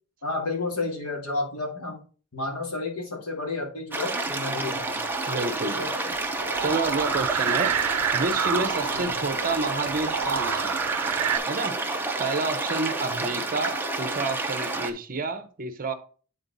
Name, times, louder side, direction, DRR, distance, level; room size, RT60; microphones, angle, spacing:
voice 1, 0.2-2.0 2.3-5.0 5.3-5.9 8.9-9.2 13.0-13.2, left 3 dB, 85° left, 2.2 m, -32 dB
sound 1, 3.9-14.9, right 2 dB, 10° right, 0.7 m, -29 dB
voice 2, 5.3-6.1 6.6-10.9 11.5-15.9, right 3 dB, 40° right, 0.9 m, -30 dB
sound 2, 6.4-11.4, right 8 dB, 80° right, 0.5 m, -29 dB
8.7 x 3.9 x 4.0 m
head